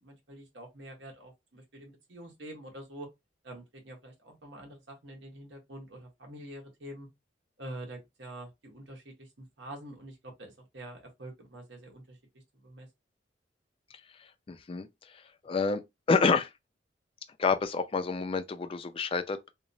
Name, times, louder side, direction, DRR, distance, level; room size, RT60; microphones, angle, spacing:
voice 1, 0.0-3.1 3.4-7.1 7.6-12.2 12.6-12.9, right 1 dB, 80° right, 1.2 m, -46 dB
voice 2, 14.5-14.9 15.4-15.8 16.1-16.5 17.4-19.5, left 4 dB, 30° left, 0.3 m, -28 dB
2.9 x 2.1 x 2.5 m
head